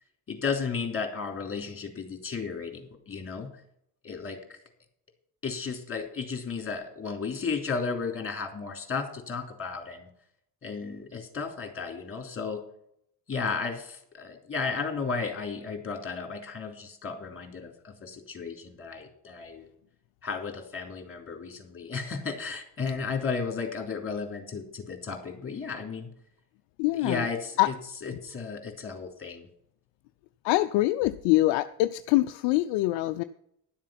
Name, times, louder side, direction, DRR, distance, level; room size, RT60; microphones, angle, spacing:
voice 1, 0.3-3.5 4.0-4.6 5.4-10.1 10.6-12.6 13.3-19.7 20.2-26.1 26.9-27.7 28.0-29.5, left 5 dB, 25° left, 4 dB, 3.1 m, -34 dB
voice 2, 26.8-27.3 27.6-27.7 30.4-33.2, left 17 dB, 65° left, 11 dB, 0.6 m, -24 dB
11.5 x 7.4 x 5.8 m, 0.74 s
hypercardioid pair, 50°, 48 cm